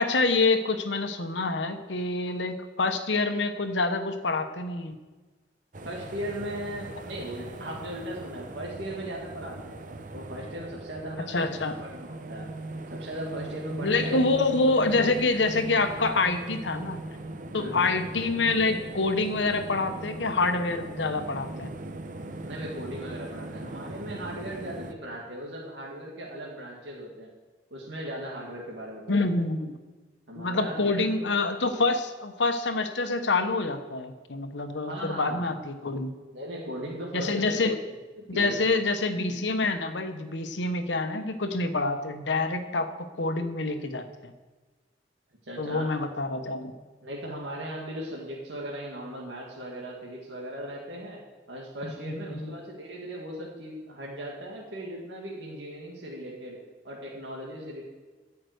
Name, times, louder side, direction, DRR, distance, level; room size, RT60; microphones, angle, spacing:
voice 1, 0.0-4.9 11.3-11.8 13.8-17.0 17.5-21.7 29.1-29.8 30.4-36.1 37.1-37.8 38.3-44.3 45.6-46.7 51.8-52.5, left 3 dB, 90° left, 8 dB, 1.0 m, -27 dB
sound 1, 5.7-24.9, right 2 dB, 45° right, 0.8 m, -39 dB
voice 2, 5.9-9.8 10.1-12.5 12.9-14.2 17.6-17.9 22.4-27.3 27.7-29.3 30.3-31.3 34.7-35.5 36.3-37.7 38.2-38.6 45.4-45.9 47.0-51.2 51.5-56.6 56.8-57.8, right 1 dB, 85° right, -3 dB, 2.0 m, -38 dB
13.5 x 5.8 x 8.0 m, 1.3 s
head